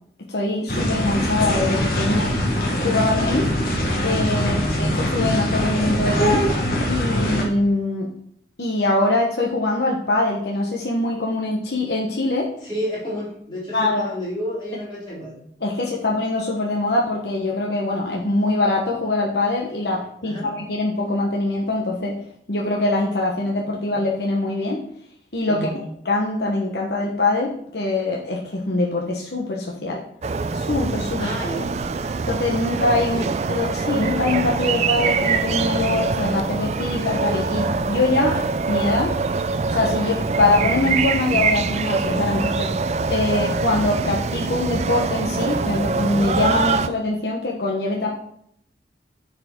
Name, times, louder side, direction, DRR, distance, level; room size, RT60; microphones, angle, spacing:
voice 1, 0.3-2.3 2.8-3.5 4.0-6.5 6.9-8.1 8.6-12.5 13.7-14.1 15.6-22.2 22.5-24.8 25.3-25.7 26.1-30.0 30.5-31.3 32.3-38.3 38.7-39.1 39.7-42.7 43.1-48.1, left 2 dB, 70° left, -2 dB, 1.1 m, -23 dB
sound 1, 0.7-7.4, equal, 55° left, 1.5 m, -22 dB
voice 2, 4.4-4.8 12.6-15.4 20.2-20.5 25.5-25.8 31.2-31.7 33.1-33.3 38.2-38.5, equal, 25° left, -7 dB, 3.7 m, -31 dB
sound 2, 30.2-46.9, right 4 dB, 35° right, 0.3 m, -24 dB
10.0 x 4.8 x 4.4 m, 0.68 s
head